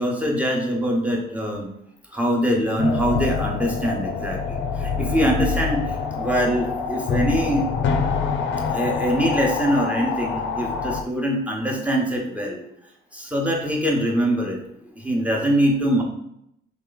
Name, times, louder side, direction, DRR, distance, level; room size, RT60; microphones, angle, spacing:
voice 1, 0.0-1.7 2.1-5.8 6.1-7.6 8.7-12.6 13.1-14.6 15.0-16.0, equal, 5° right, -1 dB, 1.0 m, -23 dB
sound 1, 2.8-11.0, left 5 dB, 70° left, 0.6 m, -26 dB
3.3 x 3.0 x 3.9 m, 0.76 s
cardioid pair, 90°, 20 cm